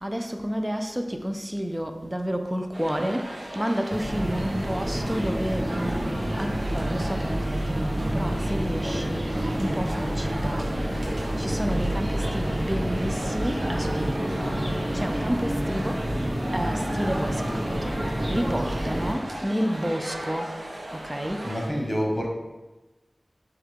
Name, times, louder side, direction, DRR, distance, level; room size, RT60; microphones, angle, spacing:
voice 1, 0.0-9.2 9.6-10.6 11.4-14.3 14.9-16.0 16.5-17.7 18.3-20.5 20.9-21.4, equal, 15° right, 0.4 m, -30 dB
sound 1, 2.7-21.7, right 1 dB, 85° right, 0.7 m, -37 dB
sound 2, 3.9-19.1, equal, 55° right, 0.8 m, -28 dB
voice 2, 21.4-22.3, equal, 30° left, 1.0 m, -27 dB
6.3 x 2.4 x 3.6 m
wide cardioid pair, 65°, 0 cm